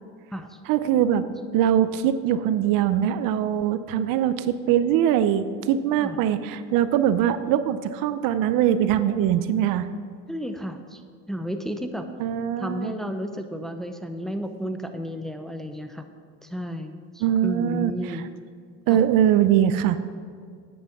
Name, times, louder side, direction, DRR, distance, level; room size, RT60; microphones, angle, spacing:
voice 1, 0.7-1.2 1.5-9.9 12.2-12.9 17.2-17.9 18.9-20.0, right 10 dB, 65° right, 12 dB, 0.7 m, -22 dB
voice 2, 10.3-11.0 11.3-12.1 12.6-16.1 16.4-18.3 18.9-19.0, equal, ahead, 6 dB, 0.7 m, -32 dB
10.0 x 8.7 x 5.9 m, 2.1 s
supercardioid pair, 115°, 36 cm